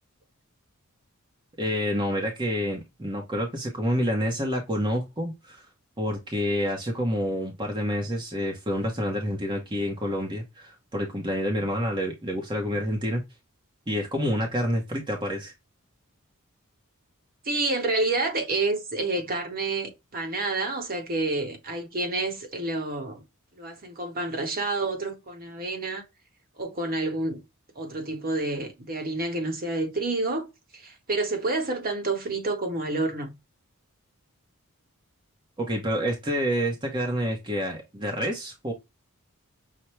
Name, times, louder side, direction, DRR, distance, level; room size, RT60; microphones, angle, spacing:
voice 1, 1.6-5.7 6.0-13.2 13.9-15.5 35.6-38.7, equal, 20° right, 0.8 m, -28 dB
voice 2, 17.4-23.2 23.6-26.0 26.6-27.4 27.8-30.5 30.7-33.3, right 2 dB, 40° right, 1.0 m, -29 dB
5.8 x 2.1 x 3.0 m
head